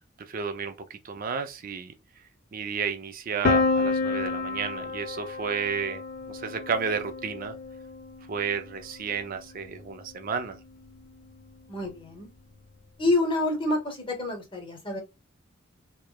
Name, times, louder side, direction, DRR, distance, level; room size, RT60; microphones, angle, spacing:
voice 1, 0.3-1.9 2.5-7.6 8.3-10.6, right 6 dB, 45° right, 0.4 m, -32 dB
Piano, 3.4-9.2, left 4 dB, 45° left, 0.3 m, -30 dB
voice 2, 11.7-12.3 13.0-15.0, left 2 dB, 25° left, 0.8 m, -27 dB
3.0 x 2.0 x 2.2 m
head